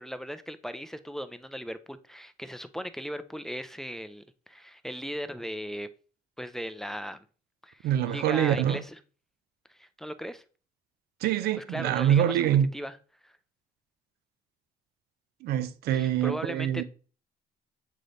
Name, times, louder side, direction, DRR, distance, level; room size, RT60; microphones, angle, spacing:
voice 1, 0.0-5.9 6.4-7.2 7.6-9.0 9.7-10.4 11.6-12.4 12.7-13.0 13.2-13.3 15.9-16.8, equal, 5° left, 0.5 m, -38 dB
voice 2, 7.8-8.8 11.2-12.7 15.4-16.8, right 10 dB, 85° right, 0.7 m, -25 dB
7.6 x 3.3 x 3.9 m
cardioid pair, 95°, 16 cm